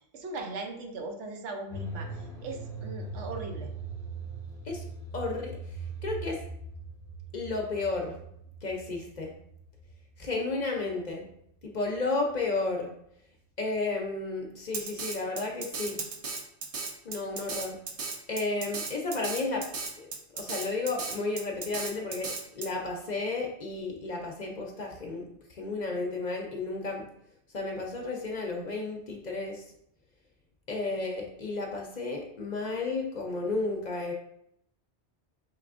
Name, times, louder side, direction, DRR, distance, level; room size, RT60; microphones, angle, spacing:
voice 1, 0.1-2.1 2.4-3.7, right 3 dB, 85° right, 4 dB, 1.0 m, -38 dB
sound 1, 1.7-11.6 11.9-12.0, right 3 dB, 5° left, 0.5 m, -41 dB
voice 2, 5.1-6.4 7.3-8.2 8.6-9.3 10.2-11.3 11.6-12.9 13.6-16.0 17.0-17.8 18.3-19.7 20.0-20.1 20.3-22.3 22.6-27.1 27.5-29.6 30.7-34.1, left 3 dB, 50° left, 0 dB, 0.6 m, -32 dB
Drum kit, 14.7-22.7, right 4 dB, 55° right, 0.4 m, -36 dB
5.2 x 3.3 x 2.4 m, 0.73 s
omnidirectional pair, 1.2 m